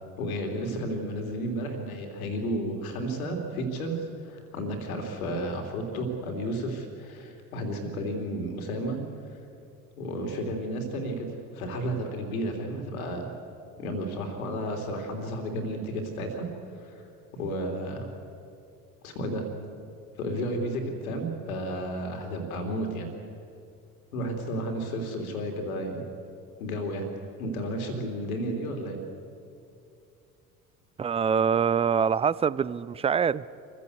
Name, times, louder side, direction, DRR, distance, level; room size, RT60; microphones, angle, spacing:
voice 1, 0.2-9.0 9.9-13.3 13.8-16.5 16.8-17.0 17.3-18.1 19.0-19.5 20.2-23.1 24.1-26.0 26.6-27.1 27.4-29.0, equal, 70° left, 4 dB, 3.0 m, -32 dB
voice 2, 31.0-33.5, right 7 dB, 15° right, 19 dB, 0.4 m, -24 dB
26.0 x 15.5 x 8.1 m, 2.5 s
figure-of-eight pair, 60°, 44 cm